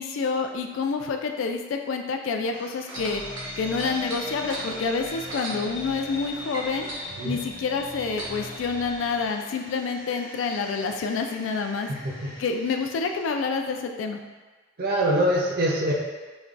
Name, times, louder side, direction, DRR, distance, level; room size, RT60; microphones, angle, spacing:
voice 1, 0.0-3.2 3.6-6.9 7.2-11.9 12.4-14.2, left 4 dB, 85° left, 4 dB, 0.3 m, -28 dB
sound 1, 2.5-13.5, left 1 dB, 65° left, 1.2 m, -44 dB
sound 2, 2.8-6.2 6.5-8.5 9.3-9.4, right 1 dB, 75° right, 0.9 m, -38 dB
sound 3, 2.9-9.3, left 1 dB, 20° left, 0.5 m, -39 dB
voice 2, 14.8-15.9, right 1 dB, 55° right, -2 dB, 0.6 m, -24 dB
5.1 x 2.2 x 2.4 m, 1.3 s
head